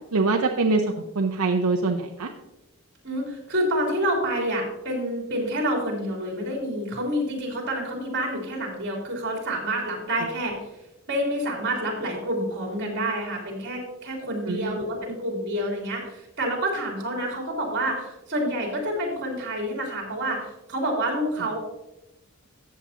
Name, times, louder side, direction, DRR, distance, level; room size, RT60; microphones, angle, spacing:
voice 1, 0.1-0.8 1.2-2.3 14.4-14.8, right 3 dB, 85° right, 3 dB, 0.8 m, -23 dB
voice 2, 3.0-10.6 11.1-21.6, right 1 dB, 50° right, -1 dB, 3.5 m, -28 dB
14.0 x 8.4 x 2.9 m, 0.90 s
head